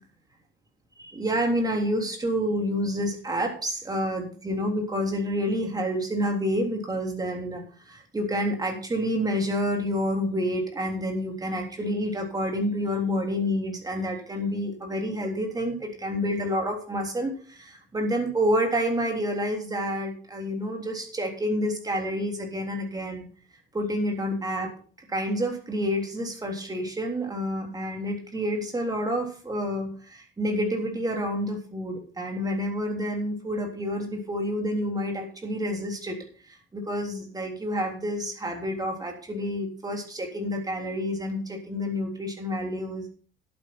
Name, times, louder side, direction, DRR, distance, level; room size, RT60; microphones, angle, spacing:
voice 1, 1.0-7.6 7.9-23.3 23.7-24.7 25.1-36.2 36.7-43.0, equal, 20° right, 2 dB, 3.3 m, -28 dB
11.0 x 8.8 x 5.9 m, 0.40 s
cardioid pair, 150°, 21 cm